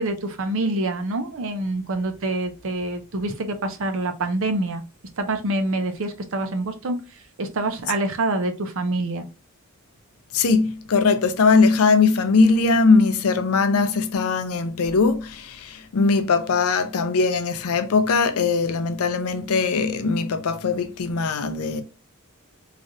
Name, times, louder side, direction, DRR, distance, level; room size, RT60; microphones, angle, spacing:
voice 1, 0.0-4.8 5.2-7.0 7.4-9.3, right 2 dB, 65° right, 0.6 m, -26 dB
voice 2, 10.3-21.8, left 4 dB, 75° left, 0.5 m, -20 dB
3.1 x 2.5 x 2.6 m
head